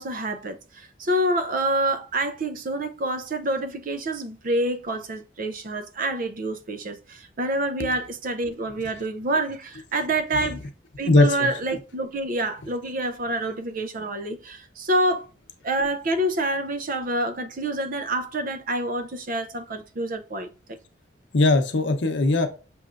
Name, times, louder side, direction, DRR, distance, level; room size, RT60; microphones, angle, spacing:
voice 1, 0.0-10.6 11.0-15.3 15.6-20.5, right 1 dB, 45° right, 0.5 m, -27 dB
voice 2, 11.1-11.5 21.3-22.5, left 2 dB, 65° left, 0.7 m, -19 dB
6.1 x 3.0 x 2.4 m
head